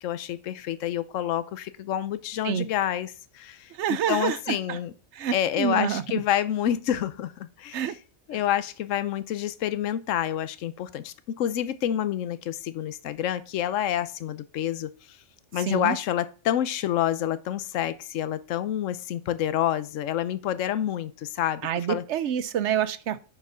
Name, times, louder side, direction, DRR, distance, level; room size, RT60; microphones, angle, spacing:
voice 1, 0.0-3.7 4.1-4.9 5.3-7.8 8.3-15.2 15.5-21.6 21.9-22.0, left 11 dB, 75° left, 1.0 m, -28 dB
voice 2, 3.7-4.8 5.1-6.0 7.7-8.0 8.3-8.4 15.5-16.0 21.6-23.2, right 9 dB, 65° right, 0.9 m, -27 dB
7.1 x 6.8 x 5.6 m
omnidirectional pair, 1.3 m